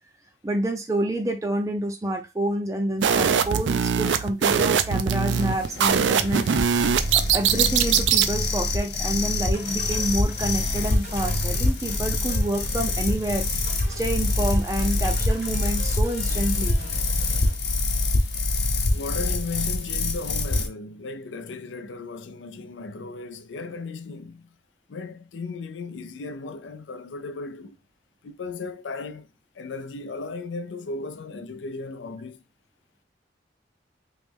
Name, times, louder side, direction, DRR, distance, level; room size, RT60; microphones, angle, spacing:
voice 1, 0.4-6.5 7.1-13.5 13.9-16.8, right 1 dB, 15° right, 0.4 m, -28 dB
sound 1, 3.0-8.3, right 7 dB, 85° right, 0.4 m, -22 dB
sound 2, 5.3-20.7, left 2 dB, 65° left, 0.9 m, -25 dB
sound 3, 9.5-17.5, right 2 dB, 60° right, 0.9 m, -43 dB
voice 2, 17.7-18.5 18.9-24.6 24.9-27.8 28.2-29.3 29.5-32.4, left 3 dB, 90° left, 0.5 m, -36 dB
3.2 x 3.0 x 3.4 m
head